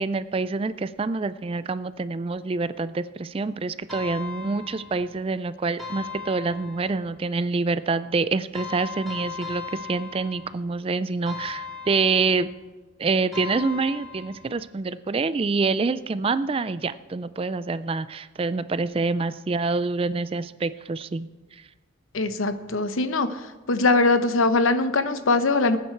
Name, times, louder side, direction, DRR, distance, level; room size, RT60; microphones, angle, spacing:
voice 1, 0.0-12.5 13.0-21.6, right 4 dB, 25° right, 14 dB, 0.3 m, -26 dB
sound 1, 3.9-5.2 5.8-7.1 8.5-10.7 11.3-12.6 13.3-14.6, left 5 dB, ahead, 3.5 m, -38 dB
voice 2, 22.1-23.3 23.7-25.8, left 3 dB, 80° left, 10 dB, 0.9 m, -21 dB
19.0 x 9.4 x 4.5 m, 1.2 s
head